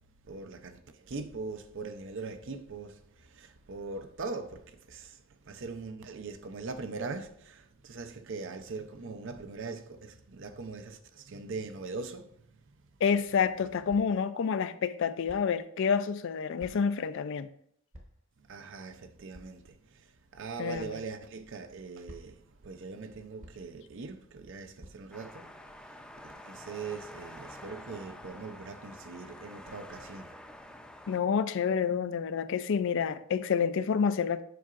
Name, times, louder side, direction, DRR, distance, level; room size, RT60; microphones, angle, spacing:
voice 1, 0.2-12.7 18.4-30.4, right 4 dB, 65° right, 0.6 m, -41 dB
voice 2, 13.0-17.5 20.6-21.0 31.1-34.4, left 6 dB, 65° left, 0.4 m, -28 dB
sound 1, 13.9-14.3 15.3-15.6 16.6-17.0 17.9-18.3 19.3-19.7 20.7-20.9 22.1-22.5 23.4-23.8 24.8-25.2, equal, 35° right, 0.9 m, -52 dB
sound 2, 25.1-31.2, left 1 dB, 5° left, 0.5 m, -48 dB
7.7 x 5.6 x 2.5 m
head